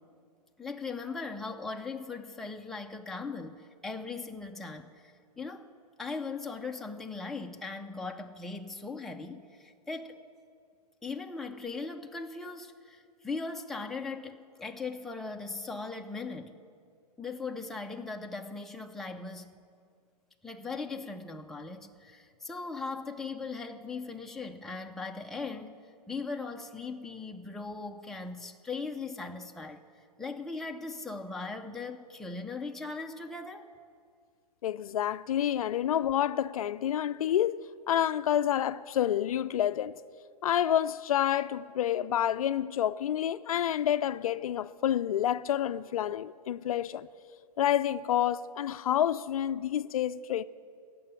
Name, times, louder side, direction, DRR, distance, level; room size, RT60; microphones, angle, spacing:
voice 1, 0.6-5.7 6.0-10.2 11.0-16.6 17.2-19.6 20.4-25.8 26.1-29.9 30.2-33.7, left 4 dB, ahead, 0.5 m, -39 dB
voice 2, 34.6-40.0 40.4-47.1 47.6-50.4, left 10 dB, 60° left, 0.4 m, -28 dB
16.5 x 7.0 x 8.9 m
hypercardioid pair, 125°, 20 cm